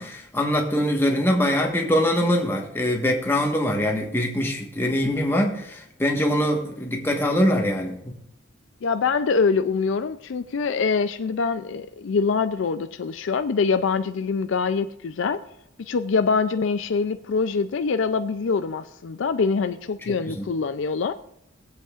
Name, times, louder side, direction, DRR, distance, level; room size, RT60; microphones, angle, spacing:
voice 1, 0.0-8.1 20.1-20.4, equal, 10° left, 1.3 m, -23 dB
voice 2, 8.8-15.4 15.9-21.1, left 5 dB, 60° left, 0.4 m, -24 dB
21.5 x 8.0 x 2.5 m
head